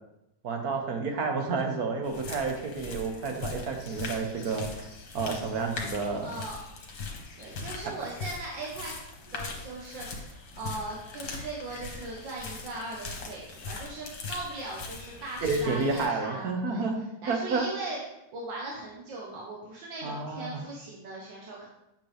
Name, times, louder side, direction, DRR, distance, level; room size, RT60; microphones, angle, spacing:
voice 1, 0.4-4.8 5.1-6.3 15.4-17.0 17.3-17.6 20.0-20.6, right 4 dB, 60° right, 3 dB, 1.5 m, -30 dB
sound 1, 2.0-16.1, left 3 dB, 70° left, 1.8 m, -40 dB
voice 2, 6.2-6.6 7.4-9.0 9.3-16.8 17.2-18.0 18.3-21.7, right 2 dB, 90° right, -3 dB, 1.9 m, -39 dB
8.1 x 6.0 x 3.4 m, 0.87 s
omnidirectional pair, 1.9 m